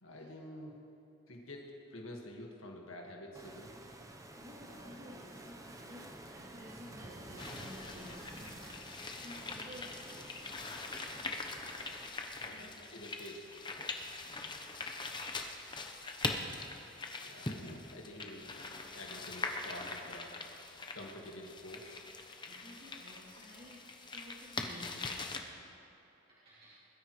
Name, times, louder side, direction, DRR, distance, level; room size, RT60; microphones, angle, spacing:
voice 1, 0.0-0.8 1.3-3.7 12.3-13.5 17.2-18.5 18.9-20.3 20.9-22.1, left 1 dB, 90° left, 0 dB, 1.8 m, -48 dB
Waves surf, 3.3-12.1, right 1 dB, 15° right, 0.8 m, -50 dB
voice 2, 4.3-10.6 12.4-12.7 14.2-14.7 22.4-25.3 26.3-26.8, equal, 45° right, -12 dB, 3.1 m, -54 dB
sound 1, 7.4-25.4, left 3 dB, 25° left, 0.9 m, -42 dB
21.0 x 13.5 x 3.2 m, 3.0 s
head